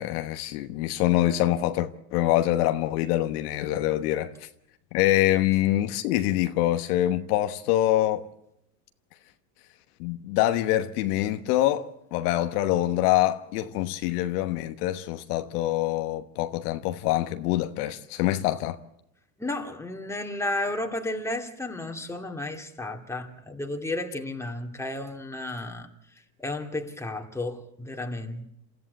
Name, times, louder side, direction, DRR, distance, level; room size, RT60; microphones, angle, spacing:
voice 1, 0.0-4.3 4.9-8.3 10.0-18.8, left 14 dB, 65° left, 1.3 m, -25 dB
voice 2, 19.4-25.9 26.4-28.5, left 2 dB, 5° left, 2.4 m, -33 dB
27.5 x 14.0 x 8.2 m
hypercardioid pair, 95°, 49 cm